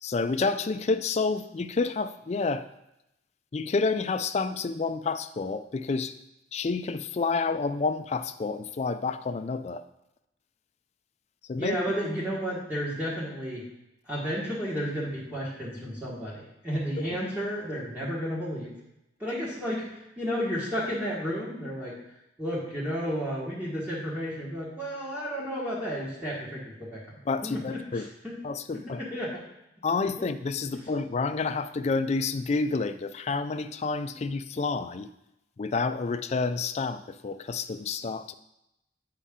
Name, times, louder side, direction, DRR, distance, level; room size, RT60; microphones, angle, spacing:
voice 1, 0.0-2.7 3.5-6.1 6.5-9.8 11.5-12.0 17.0-17.1 27.3-28.1 28.4-29.0 29.8-35.1 35.6-38.3, left 4 dB, 35° left, 10 dB, 0.4 m, -29 dB
voice 2, 11.6-13.6 14.1-18.7 19.2-21.9 22.4-28.3 28.7-29.4 30.2-30.3 30.7-30.8, equal, 10° right, -7 dB, 1.5 m, -32 dB
8.3 x 5.6 x 3.7 m, 0.87 s
head